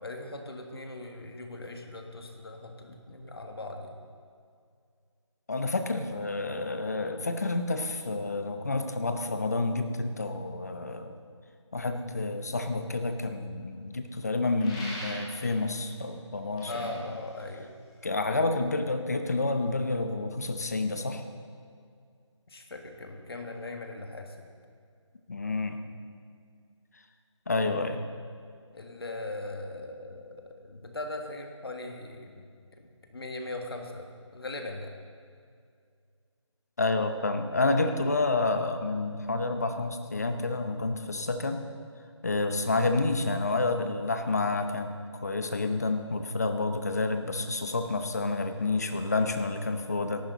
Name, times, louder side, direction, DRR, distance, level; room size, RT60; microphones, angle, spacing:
voice 1, 0.0-3.9 16.7-17.7 22.5-24.5 27.6-27.7 28.7-34.9, left 2 dB, 50° left, 3 dB, 1.8 m, -40 dB
voice 2, 5.5-11.2 11.7-16.9 18.0-21.2 25.3-25.8 27.5-28.0 36.8-41.6 42.2-44.9 45.2-50.2, left 3 dB, 30° left, 7 dB, 0.8 m, -29 dB
sound 1, 14.6-15.6 16.4-18.1, equal, 10° left, 1.7 m, -42 dB
18.0 x 14.0 x 4.0 m, 2.2 s
figure-of-eight pair, 175°, 16 cm